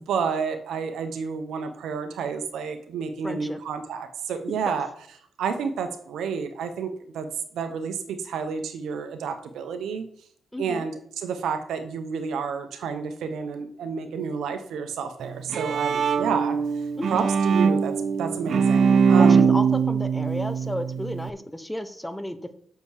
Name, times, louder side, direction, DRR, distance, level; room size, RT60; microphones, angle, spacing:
voice 1, 0.0-4.9 5.4-7.3 7.5-10.0 10.6-16.6 17.1-19.5, right 6 dB, 85° right, 7 dB, 1.1 m, -30 dB
voice 2, 3.2-3.6 4.5-4.6 10.5-10.9 17.0-17.3 19.2-22.5, equal, 5° left, 10 dB, 0.9 m, -32 dB
Bowed string instrument, 15.2-21.3, right 6 dB, 65° right, 0.4 m, -22 dB
6.9 x 5.3 x 6.5 m, 0.64 s
cardioid pair, 80°, 0 cm